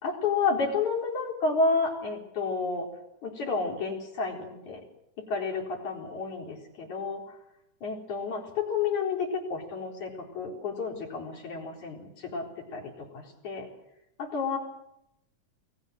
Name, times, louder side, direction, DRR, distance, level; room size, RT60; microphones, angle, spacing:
voice 1, 0.0-2.9 3.2-4.8 5.2-7.4 7.8-13.7 14.2-14.6, left 4 dB, 70° left, 0 dB, 5.5 m, -31 dB
28.5 x 19.5 x 6.5 m, 0.82 s
omnidirectional pair, 3.5 m